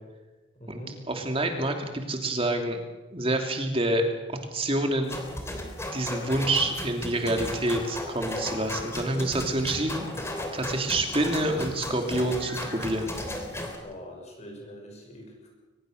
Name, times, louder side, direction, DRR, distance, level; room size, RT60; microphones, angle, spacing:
voice 1, 0.6-1.0 13.8-15.5, equal, 35° left, 1 dB, 5.8 m, -43 dB
voice 2, 1.1-2.8 3.1-4.0 4.3-5.2 5.9-10.1 10.5-13.2, right 1 dB, 30° right, 4 dB, 2.9 m, -27 dB
sound 1, 5.1-13.8, left 1 dB, 15° left, 3.2 m, -35 dB
23.5 x 20.5 x 6.5 m, 1.2 s
head